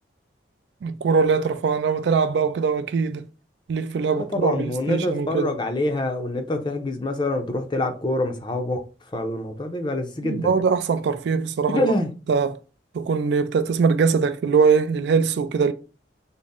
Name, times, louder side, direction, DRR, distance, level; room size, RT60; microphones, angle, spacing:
voice 1, 0.8-3.2 3.7-5.5 10.2-11.9 12.3-12.6 12.9-15.7, right 5 dB, 65° right, 0.3 m, -22 dB
voice 2, 4.2-8.8 9.1-10.5 11.7-12.1, left 1 dB, 25° left, 0.5 m, -26 dB
4.0 x 2.0 x 3.6 m
head